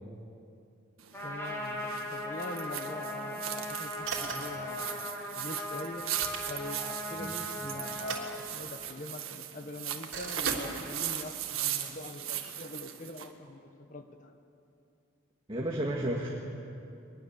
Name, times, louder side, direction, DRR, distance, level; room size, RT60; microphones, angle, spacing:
sound 1, 1.0-13.3, right 11 dB, 90° right, 1.6 m, -38 dB
Trumpet, 1.1-8.4, left 1 dB, 10° left, 4.0 m, -39 dB
voice 1, 1.2-6.0 6.5-14.3, left 2 dB, 40° left, 6 dB, 1.4 m, -43 dB
sound 2, 4.0-4.6 5.9-6.8 7.9-8.9 10.1-11.1, right 4 dB, 70° right, 3.2 m, -39 dB
voice 2, 15.5-16.3, right 1 dB, 25° right, -2 dB, 1.9 m, -32 dB
23.0 x 20.5 x 7.2 m, 2.6 s
head